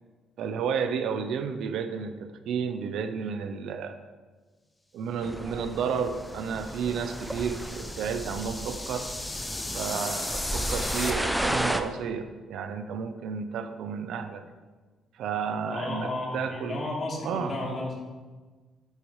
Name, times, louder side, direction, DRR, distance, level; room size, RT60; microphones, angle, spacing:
voice 1, 0.4-4.0 4.9-9.1 9.7-14.4 15.2-16.8 17.2-17.5, right 6 dB, 80° right, 9 dB, 0.7 m, -32 dB
sound 1, 5.2-11.8, right 1 dB, 5° right, 0.6 m, -33 dB
sound 2, 6.0-11.1, left 2 dB, 20° left, 0.9 m, -36 dB
voice 2, 15.7-17.9, left 2 dB, 45° left, -3 dB, 2.7 m, -33 dB
9.1 x 7.7 x 3.3 m, 1.3 s
cardioid pair, 85°, 0 cm